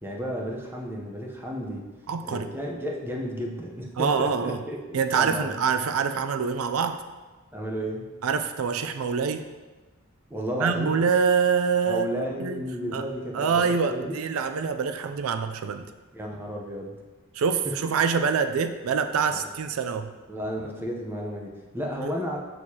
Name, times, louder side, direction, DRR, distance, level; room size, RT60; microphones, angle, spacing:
voice 1, 0.0-1.9 2.2-5.5 7.5-8.1 10.3-11.0 11.9-14.2 16.1-17.0 19.3-19.5 20.3-22.4, equal, 10° right, -1 dB, 0.8 m, -33 dB
voice 2, 2.1-2.5 4.0-4.6 4.9-7.0 8.2-9.5 10.6-12.7 12.9-13.0 13.3-15.9 17.3-20.1 22.0-22.1, right 6 dB, 85° right, 9 dB, 0.4 m, -25 dB
6.5 x 6.5 x 2.8 m, 1.3 s
head